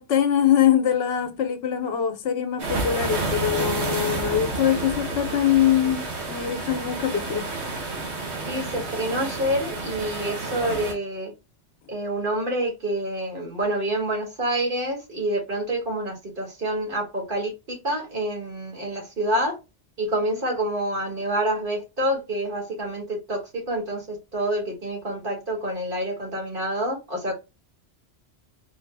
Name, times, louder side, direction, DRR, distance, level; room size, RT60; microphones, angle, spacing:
voice 1, 0.0-7.5, left 10 dB, 65° left, 0.9 m, -23 dB
sound 1, 2.6-10.9, right 3 dB, 70° right, 1.2 m, -30 dB
voice 2, 8.5-11.3 11.9-19.6 20.0-27.3, right 1 dB, 50° right, 1.5 m, -27 dB
3.9 x 2.0 x 3.2 m
omnidirectional pair, 1.2 m